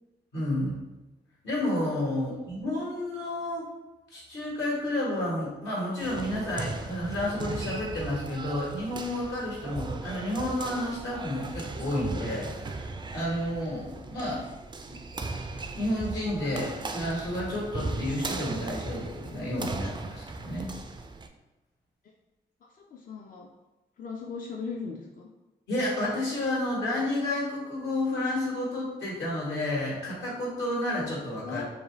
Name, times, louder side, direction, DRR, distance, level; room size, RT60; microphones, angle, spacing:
voice 1, 0.3-0.8 1.4-3.6 4.1-12.8 13.1-14.4 14.9-15.0 15.7-20.7 25.7-31.6, left 1 dB, 80° left, -6 dB, 1.3 m, -31 dB
sound 1, 6.0-21.3, right 3 dB, 25° right, 0.3 m, -37 dB
voice 2, 22.6-23.5 24.0-25.3 31.4-31.6, left 5 dB, 50° left, 0 dB, 0.4 m, -39 dB
2.6 x 2.3 x 3.1 m, 1.0 s
supercardioid pair, 45°, 19 cm